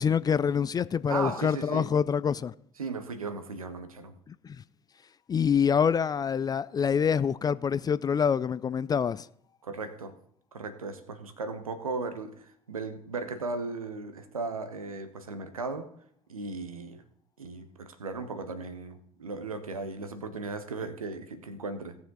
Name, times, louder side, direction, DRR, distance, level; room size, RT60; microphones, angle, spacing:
voice 1, 0.0-2.5 4.3-4.6 5.3-9.3, left 7 dB, 20° left, 0.3 m, -26 dB
voice 2, 1.1-1.9 2.8-4.1 9.6-10.2 10.5-15.9 16.3-17.0 17.4-22.0, right 3 dB, 80° right, 0.9 m, -36 dB
17.0 x 6.8 x 3.8 m
figure-of-eight pair, 55°, 18 cm